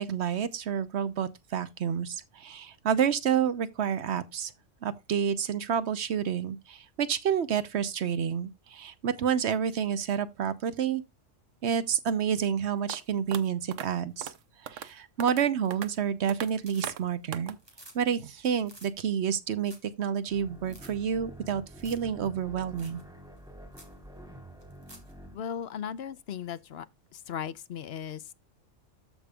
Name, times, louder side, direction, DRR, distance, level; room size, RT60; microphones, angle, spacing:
voice 1, 0.0-4.5 4.8-11.0 11.6-14.3 14.6-17.6 17.9-23.0, right 8 dB, 65° right, 1.0 m, -29 dB
sound 1, 12.9-13.0 13.3-13.4 13.7-13.9 14.2-14.4 14.7-14.9 15.2-15.4 15.7-15.9 16.3-16.5 16.8-17.0 17.3-17.5, right 9 dB, 90° right, 1.1 m, -37 dB
sound 2, 15.6-16.0 16.3-17.2 17.5-18.0 18.3-18.4 18.6-18.9 19.3-19.4 19.6-19.9 20.2-20.3 20.6-20.9 21.7-22.1 22.4-22.5 22.8-23.0 23.4-23.5 23.7-23.9 24.6-25.1 27.3-27.4, right 1 dB, 20° right, 2.4 m, -52 dB
sound 3, 20.3-25.4, equal, 5° right, 2.8 m, -48 dB
voice 2, 25.3-26.9 27.1-28.3, left 8 dB, 65° left, 0.8 m, -37 dB
13.5 x 5.2 x 2.3 m
omnidirectional pair, 1.3 m